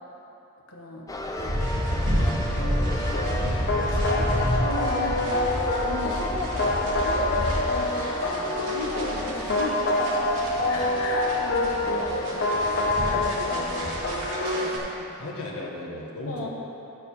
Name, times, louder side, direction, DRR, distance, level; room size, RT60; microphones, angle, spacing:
voice 1, 0.7-1.1 1.4-1.6 2.0-3.6 3.9-4.3 4.6-5.4 5.8-10.4 10.7-15.0 16.3-16.5, left 1 dB, 70° left, -1 dB, 1.4 m, -36 dB
sound 1, 1.1-12.9, left 1 dB, 15° left, 0.6 m, -36 dB
sound 2, 1.4-14.8, equal, 70° right, 2.3 m, -29 dB
sound 3, 3.1-14.8, left 2 dB, 50° left, 0.9 m, -27 dB
voice 2, 15.2-16.5, left 2 dB, 90° left, -2 dB, 1.5 m, -36 dB
14.0 x 5.1 x 5.5 m, 2.9 s
head